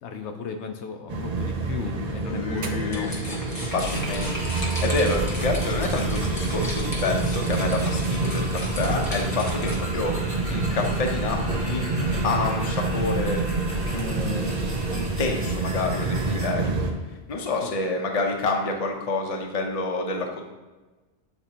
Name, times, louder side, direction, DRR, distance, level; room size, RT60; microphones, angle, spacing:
voice 1, 0.0-3.4 17.6-17.7, left 5 dB, 75° left, 5 dB, 0.8 m, -35 dB
sound 1, 1.1-16.9, right 3 dB, 45° right, 0.6 m, -27 dB
voice 2, 2.3-3.4 3.6-11.9 12.2-13.4 13.9-14.5 14.9-16.7 17.1-20.5, left 3 dB, 35° left, 2 dB, 0.7 m, -28 dB
sound 2, 2.8-10.0, equal, 20° left, 1.1 m, -37 dB
sound 3, 3.8-16.5, equal, 30° right, 1.4 m, -35 dB
8.1 x 4.4 x 2.8 m, 1.2 s
omnidirectional pair, 1.2 m